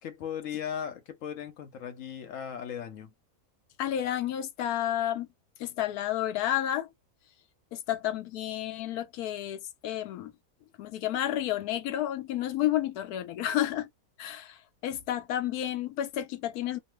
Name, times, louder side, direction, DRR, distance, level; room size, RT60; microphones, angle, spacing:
voice 1, 0.0-3.1, left 8 dB, 65° left, 0.9 m, -37 dB
voice 2, 3.8-5.3 5.6-6.9 7.7-10.3 10.8-13.9 14.2-16.8, left 12 dB, 85° left, 1.1 m, -31 dB
3.0 x 2.0 x 3.0 m
omnidirectional pair, 1.6 m